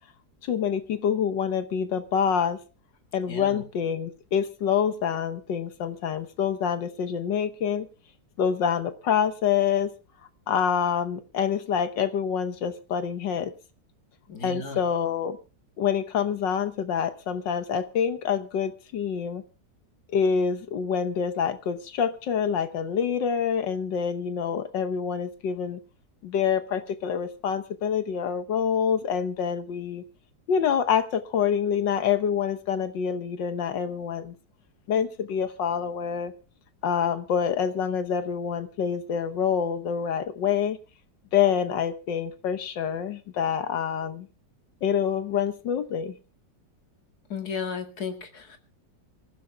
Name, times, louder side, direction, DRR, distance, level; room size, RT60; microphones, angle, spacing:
voice 1, 0.4-2.6 3.1-7.9 8.4-9.9 10.5-13.5 14.4-15.4 15.8-19.4 20.1-25.8 26.2-30.0 30.5-34.3 34.9-36.3 36.8-40.8 41.3-44.3 44.8-46.1, left 7 dB, 75° left, 1.7 m, -26 dB
voice 2, 3.3-3.6 14.3-14.8 47.3-48.6, left 5 dB, 55° left, 2.7 m, -34 dB
26.5 x 15.0 x 2.3 m
omnidirectional pair, 2.0 m